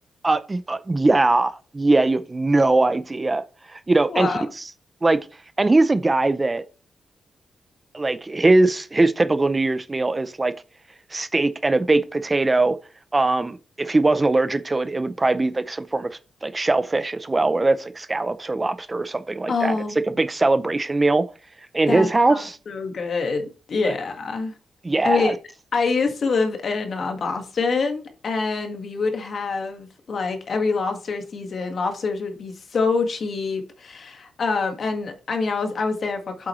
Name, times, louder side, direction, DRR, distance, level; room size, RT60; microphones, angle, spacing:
voice 1, 0.2-4.3 5.0-5.2 5.6-6.6 7.9-10.5 11.1-12.8 13.1-19.8 20.1-21.3 21.7-22.6 23.8-23.9 24.8-25.4, right 2 dB, 20° right, 0.5 m, -21 dB
voice 2, 4.1-4.4 19.5-20.0 21.9-24.5 25.0-25.3 25.7-36.5, left 4 dB, 55° left, 1.6 m, -25 dB
7.7 x 7.5 x 3.1 m
cardioid pair, 105°, 0 cm